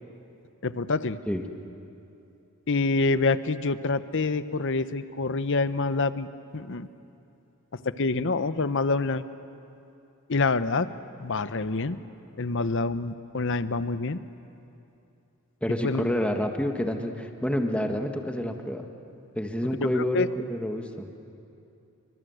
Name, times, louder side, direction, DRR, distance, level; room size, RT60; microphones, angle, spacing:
voice 1, 0.6-1.2 2.7-6.3 6.5-6.9 7.7-9.2 10.3-10.9 11.2-12.0 12.4-14.2 15.8-16.1 19.9-20.3, left 3 dB, 60° left, 13 dB, 0.8 m, -26 dB
voice 2, 15.6-18.9 19.4-21.1, equal, 5° left, 3 dB, 1.6 m, -28 dB
28.0 x 24.5 x 8.0 m, 2.8 s
head